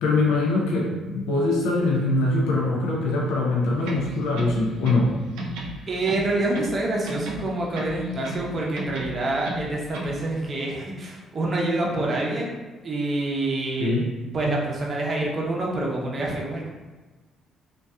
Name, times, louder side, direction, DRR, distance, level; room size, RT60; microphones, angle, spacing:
voice 1, 0.0-5.2 13.8-14.1, left 2 dB, 85° left, -2 dB, 0.4 m, -23 dB
sound 1, 3.8-5.1 5.4-6.8 7.1-8.5 8.8-10.2, right 2 dB, 85° right, 0.4 m, -34 dB
voice 2, 5.9-12.6 12.8-13.9 14.3-16.7, right 2 dB, 40° right, -2 dB, 0.6 m, -27 dB
2.6 x 2.2 x 2.3 m, 1.3 s
supercardioid pair, 70°, 0 cm